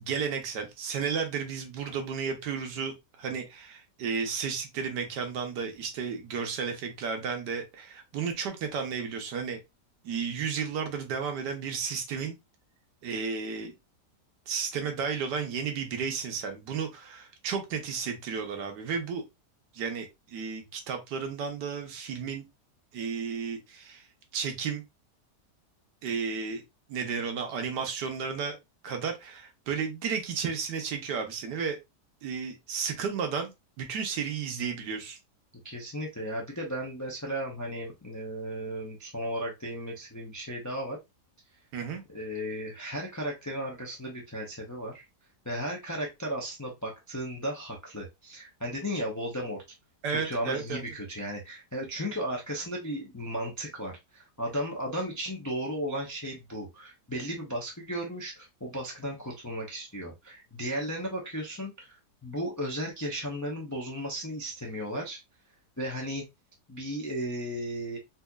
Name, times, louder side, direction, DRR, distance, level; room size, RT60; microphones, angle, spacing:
voice 1, 0.0-9.6 10.0-12.3 13.0-13.7 14.5-19.2 19.7-22.4 22.9-24.0 24.3-24.8 26.0-26.6 26.9-28.6 28.8-31.8 32.2-33.5 33.8-35.2 41.7-42.0 50.0-50.8, right 6 dB, 75° right, 4 dB, 1.4 m, -33 dB
voice 2, 35.5-41.0 42.1-45.0 45.4-49.6 50.2-65.2 65.8-66.2 66.7-68.0, equal, 25° left, -1 dB, 0.4 m, -35 dB
4.2 x 2.8 x 2.3 m, 0.21 s
omnidirectional pair, 1.8 m